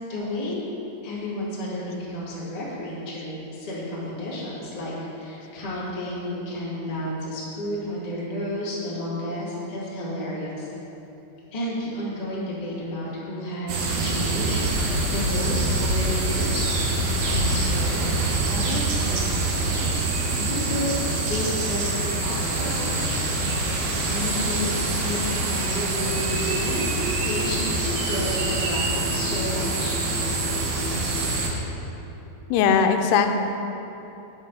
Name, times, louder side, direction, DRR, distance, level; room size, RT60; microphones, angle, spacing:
voice 1, 0.1-0.6 1.0-10.7 11.5-19.8 20.3-24.7 25.0-26.9 27.2-30.0, left 1 dB, 20° left, -8 dB, 1.1 m, -32 dB
sound 1, 13.7-31.5, right 2 dB, 85° right, 1.4 m, -25 dB
voice 2, 32.5-33.4, left 6 dB, 85° left, 6 dB, 2.7 m, -19 dB
9.3 x 7.0 x 5.5 m, 3.0 s
omnidirectional pair, 4.7 m